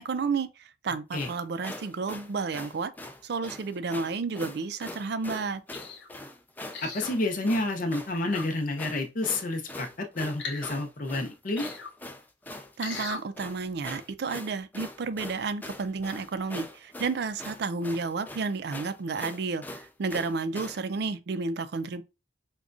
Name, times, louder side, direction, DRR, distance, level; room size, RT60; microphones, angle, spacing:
voice 1, 0.0-2.9 3.2-5.6 12.8-22.0, right 4 dB, 60° right, 0.4 m, -31 dB
sound 1, 1.1-20.8, left 1 dB, 10° left, 0.3 m, -42 dB
sound 2, 5.7-6.1 6.7-7.1 8.1-8.5 10.4-10.8 11.6-11.9 12.8-13.2 13.8-13.9, left 5 dB, 80° left, 0.9 m, -39 dB
voice 2, 6.8-11.7, left 2 dB, 45° left, 0.7 m, -29 dB
4.8 x 2.2 x 2.5 m
head